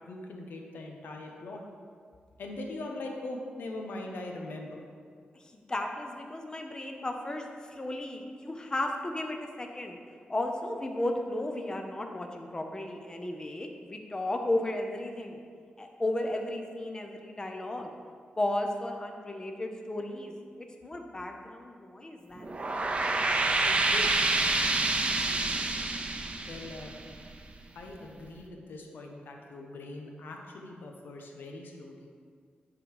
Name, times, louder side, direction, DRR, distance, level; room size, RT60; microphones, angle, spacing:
voice 1, 0.1-1.6 2.4-4.8 26.5-27.0 27.7-32.1, left 2 dB, 85° left, 1 dB, 1.0 m, -41 dB
voice 2, 5.3-10.0 10.3-15.4 15.8-17.9 18.4-24.1, left 1 dB, 25° left, 3 dB, 0.7 m, -35 dB
Swirling Wind, 22.4-27.6, right 2 dB, 35° right, 0.6 m, -28 dB
9.8 x 3.9 x 4.8 m, 2.1 s
wide cardioid pair, 120°, 3 cm